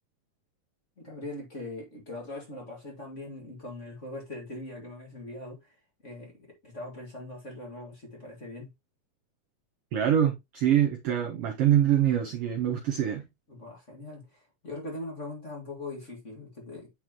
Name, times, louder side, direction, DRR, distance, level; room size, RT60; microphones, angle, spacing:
voice 1, 1.0-8.7 13.5-16.9, left 2 dB, 25° left, 1.9 m, -41 dB
voice 2, 9.9-13.2, right 10 dB, 80° right, 1.3 m, -24 dB
9.0 x 5.1 x 2.9 m
omnidirectional pair, 3.6 m